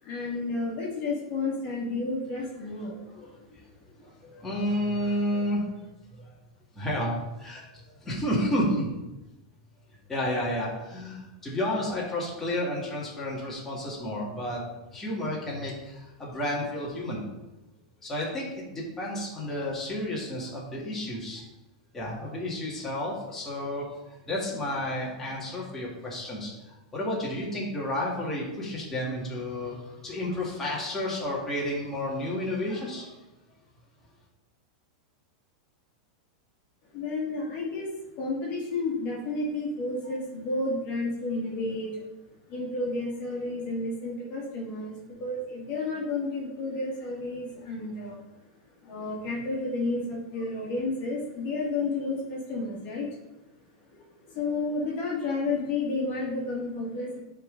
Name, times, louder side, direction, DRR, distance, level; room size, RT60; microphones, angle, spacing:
voice 1, 0.0-3.0 36.9-37.9 38.2-42.0 42.5-48.2 48.8-53.1 53.9-57.2, left 2 dB, 40° left, -3 dB, 1.7 m, -31 dB
voice 2, 3.1-3.6 4.0-5.7 6.1-6.3 6.7-7.1 7.4-8.9 10.1-14.6 14.9-17.2 18.0-21.4 21.9-23.9 24.2-33.1, left 1 dB, 10° left, -6 dB, 1.9 m, -31 dB
9.6 x 3.8 x 3.9 m, 1.0 s
supercardioid pair, 150°, 4 cm